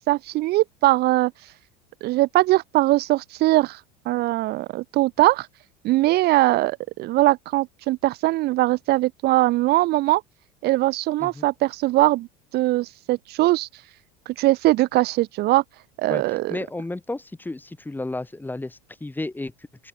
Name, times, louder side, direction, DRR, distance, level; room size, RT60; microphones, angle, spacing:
voice 1, 0.1-1.3 2.0-3.8 4.0-5.5 5.8-10.2 10.6-12.3 12.5-13.7 14.3-15.6 16.0-16.5, right 18 dB, 50° right, 1.2 m, -21 dB
voice 2, 16.1-19.9, left 2 dB, 10° left, 1.7 m, -33 dB
open air
hypercardioid pair, 75°, 21 cm